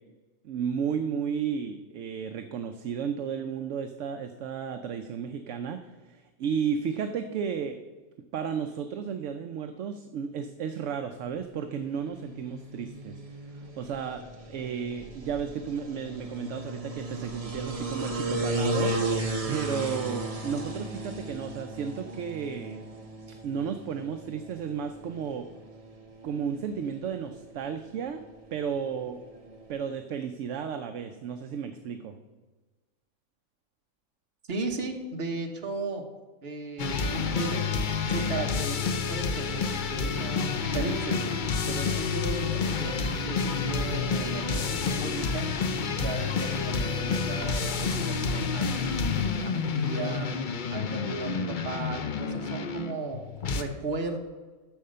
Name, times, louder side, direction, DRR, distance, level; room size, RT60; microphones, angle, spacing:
voice 1, 0.4-7.8 8.3-13.2 13.6-22.8 23.4-25.5 26.2-28.2 28.5-29.2 29.7-32.2, right 7 dB, 65° right, 8 dB, 0.9 m, -33 dB
sound 1, 11.8-29.9, right 1 dB, 30° right, 0.9 m, -36 dB
voice 2, 34.5-36.1 36.4-37.7 38.1-45.5 45.9-50.3 50.7-54.2, right 2 dB, 45° right, 3 dB, 1.3 m, -36 dB
sound 2, 36.8-53.6, left 5 dB, 50° left, 0.6 m, -29 dB
9.1 x 6.5 x 6.6 m, 1.3 s
omnidirectional pair, 1.5 m